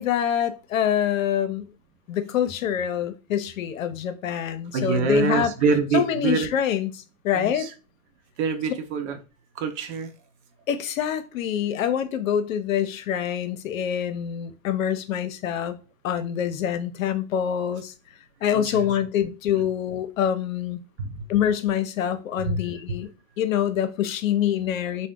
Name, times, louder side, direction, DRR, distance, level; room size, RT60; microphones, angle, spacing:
voice 1, 0.0-1.7 2.1-5.5 5.9-7.7 10.7-15.8 16.0-17.9 18.4-20.8 21.3-23.1 23.4-25.1, left 9 dB, 80° left, 0.6 m, -25 dB
voice 2, 4.7-6.5 7.3-7.7 8.4-9.2 9.5-10.1 18.5-18.9 21.0-21.2 22.4-22.6, right 5 dB, 55° right, 0.8 m, -25 dB
2.7 x 2.1 x 3.6 m
hypercardioid pair, 110°, 40 cm